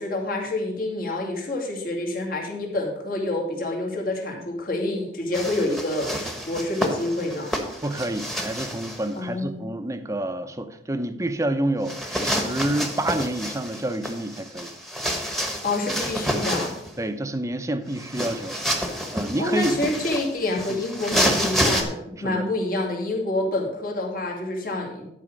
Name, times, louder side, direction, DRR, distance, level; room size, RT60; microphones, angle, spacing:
voice 1, 0.0-7.5 9.2-9.7 15.6-16.7 19.4-25.1, left 2 dB, 55° left, -1 dB, 2.3 m, -27 dB
sound 1, 5.3-9.1 11.9-16.9 17.9-21.8, equal, ahead, 1.2 m, -28 dB
voice 2, 7.8-14.7 17.0-18.6 19.1-19.8 20.7-20.8 22.2-22.5, right 1 dB, 20° right, 9 dB, 0.7 m, -28 dB
11.0 x 5.0 x 6.4 m, 0.82 s
head